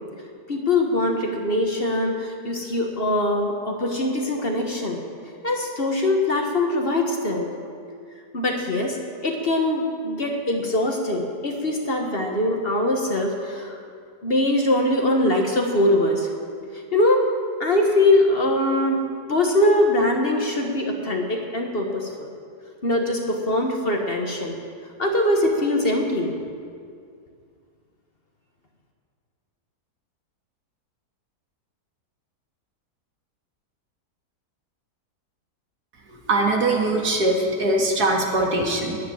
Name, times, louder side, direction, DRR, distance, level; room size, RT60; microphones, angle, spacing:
voice 1, 0.5-5.0 5.4-7.5 8.3-13.8 14.2-16.3 16.9-17.3 17.6-19.0 19.3-22.3 22.8-24.6 25.0-26.3, left 1 dB, 40° left, 2 dB, 1.4 m, -22 dB
voice 2, 36.3-39.0, right 2 dB, 75° right, 0 dB, 2.2 m, -21 dB
10.5 x 10.0 x 9.2 m, 2.2 s
omnidirectional pair, 1.7 m